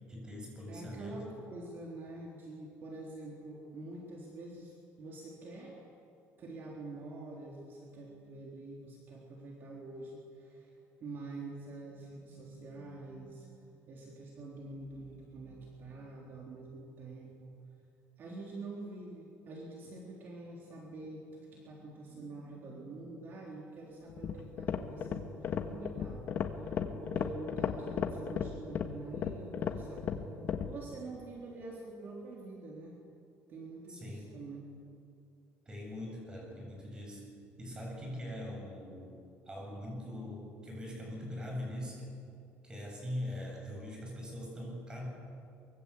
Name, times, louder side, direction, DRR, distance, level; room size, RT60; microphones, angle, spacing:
voice 1, 0.1-1.2 33.9-34.4 35.7-42.1 42.6-45.1, left 1 dB, 15° right, 0 dB, 7.4 m, -42 dB
voice 2, 0.7-5.8 6.4-10.7 11.0-13.5 13.9-17.5 18.2-26.3 26.6-26.8 27.0-30.2 30.6-33.0 33.5-34.6, right 2 dB, 45° right, -2 dB, 3.7 m, -46 dB
daxtyla se ksylo, 24.1-30.7, left 7 dB, 45° left, 1.7 m, -35 dB
24.0 x 23.5 x 8.6 m, 2.6 s
cardioid pair, 160°, 5 cm